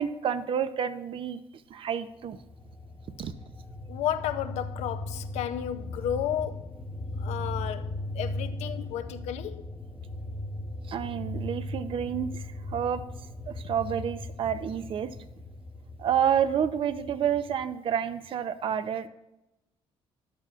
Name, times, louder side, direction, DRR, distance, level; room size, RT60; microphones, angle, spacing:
voice 1, 0.0-1.4 1.7-2.4 3.2-3.3 10.9-13.0 13.5-15.2 16.0-19.1, right 8 dB, 55° right, 0.7 m, -29 dB
sound 1, 2.2-17.6, left 1 dB, 15° left, 1.1 m, -38 dB
voice 2, 3.9-6.7 7.2-9.7, left 10 dB, 85° left, 0.6 m, -33 dB
13.5 x 11.0 x 2.4 m
cardioid pair, 120°, 11 cm